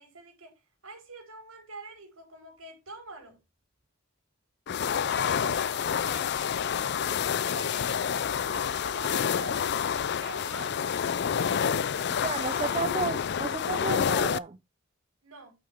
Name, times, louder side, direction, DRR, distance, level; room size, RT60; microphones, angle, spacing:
voice 1, 0.0-3.4 5.0-6.5 7.4-10.9 11.9-12.9 15.2-15.5, right 2 dB, 80° right, 4.3 m, -46 dB
sound 1, 4.7-14.4, left 7 dB, 55° left, 0.4 m, -28 dB
voice 2, 12.2-14.6, right 4 dB, 30° right, 0.5 m, -32 dB
9.5 x 6.1 x 3.6 m
head